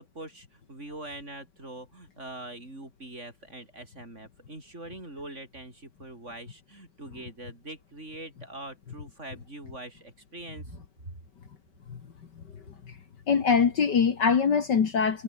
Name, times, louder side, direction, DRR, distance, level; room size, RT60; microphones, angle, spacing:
voice 1, 0.0-10.8, right 1 dB, 30° right, 6.3 m, -43 dB
voice 2, 12.4-13.0 13.3-15.2, left 6 dB, 55° left, 2.3 m, -24 dB
omnidirectional pair, 2.3 m